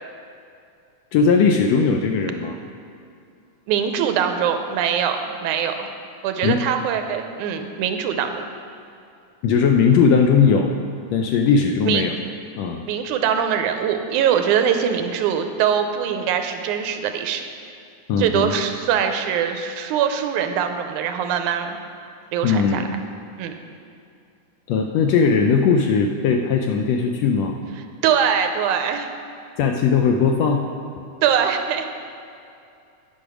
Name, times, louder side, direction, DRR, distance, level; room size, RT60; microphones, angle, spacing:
voice 1, 1.1-2.5 6.4-6.6 9.4-10.8 11.1-12.1 12.6-12.8 18.1-18.5 22.4-22.9 24.7-27.5 29.6-30.6, left 5 dB, 80° left, 3 dB, 1.5 m, -18 dB
voice 2, 3.7-5.9 6.2-8.4 11.9-12.1 12.9-17.4 18.2-21.8 22.3-22.8 23.4-23.5 28.0-29.1 31.2-31.9, right 8 dB, 90° right, 6 dB, 2.1 m, -22 dB
9.2 x 8.4 x 6.1 m, 2.5 s
omnidirectional pair, 3.5 m